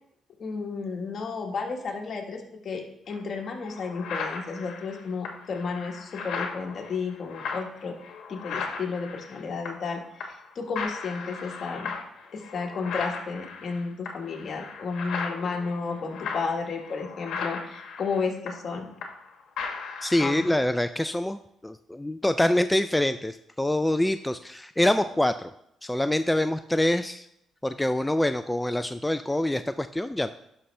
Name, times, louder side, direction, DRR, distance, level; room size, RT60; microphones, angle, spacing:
voice 1, 0.4-7.9 8.3-11.9 12.3-18.9 20.2-20.5, left 4 dB, 50° left, 2 dB, 1.5 m, -32 dB
sound 1, 3.1-3.2 3.6-9.9 10.2-10.5 10.8-19.3 19.6-20.6, left 5 dB, 75° left, 1.2 m, -37 dB
voice 2, 20.0-25.5 25.8-27.3 27.6-30.3, left 1 dB, 10° left, 10 dB, 0.3 m, -25 dB
11.5 x 5.6 x 3.3 m, 0.78 s
cardioid pair, 90°, 0 cm